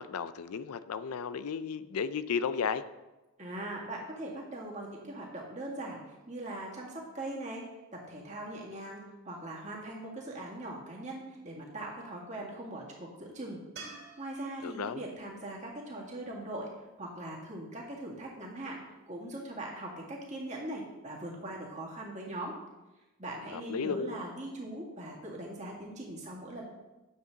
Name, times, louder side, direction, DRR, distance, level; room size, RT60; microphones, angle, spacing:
voice 1, 0.0-2.8 14.6-15.0 23.5-24.2, left 6 dB, 85° left, 14 dB, 0.4 m, -34 dB
voice 2, 3.4-7.6 7.9-13.6 14.2-16.7 17.0-18.8 19.1-22.6 23.2-26.6, right 1 dB, 30° right, -3 dB, 2.0 m, -41 dB
sound 1, 13.8-17.0 20.3-20.4, right 4 dB, 50° right, 2.7 m, -52 dB
9.8 x 7.4 x 3.9 m, 1.1 s
head